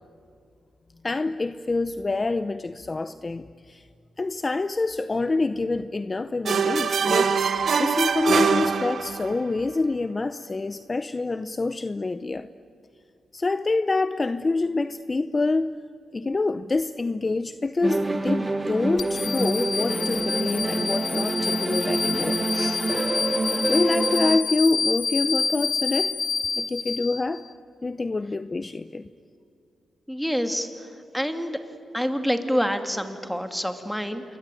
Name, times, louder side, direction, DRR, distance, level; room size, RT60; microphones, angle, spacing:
voice 1, 1.0-3.9 4.2-12.5 13.3-15.8 16.1-22.8 23.7-26.2 26.6-27.4 27.8-29.1, left 3 dB, 30° left, 13 dB, 0.7 m, -26 dB
sound 1, 6.5-9.4, right 6 dB, 65° right, 1.2 m, -23 dB
sound 2, 17.8-24.4, right 2 dB, 25° right, 1.7 m, -27 dB
sound 3, 19.0-27.5, left 5 dB, 65° left, 1.2 m, -28 dB
voice 2, 30.1-30.7 31.1-31.6 31.9-34.2, equal, ahead, 7 dB, 2.6 m, -26 dB
28.0 x 22.5 x 9.3 m, 2.5 s
cardioid pair, 75°, 0 cm